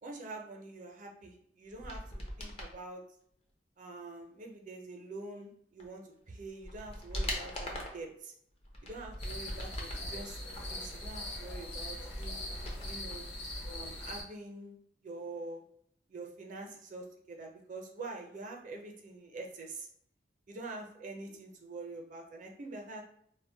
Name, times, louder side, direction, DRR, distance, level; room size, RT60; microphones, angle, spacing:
voice 1, 0.0-3.0 3.8-8.3 8.8-12.4 12.8-13.3 13.6-14.8 15.0-15.6 16.1-19.9 20.5-23.0, right 2 dB, 45° right, 1 dB, 0.5 m, -45 dB
sound 1, 1.7-2.7 5.8-5.9 6.4-8.1 8.6-10.1 10.5-13.2 13.4-13.5, left 1 dB, 35° left, 0.5 m, -41 dB
sound 2, 9.2-14.2, left 1 dB, 75° left, 0.7 m, -41 dB
2.1 x 2.1 x 3.7 m, 0.68 s
head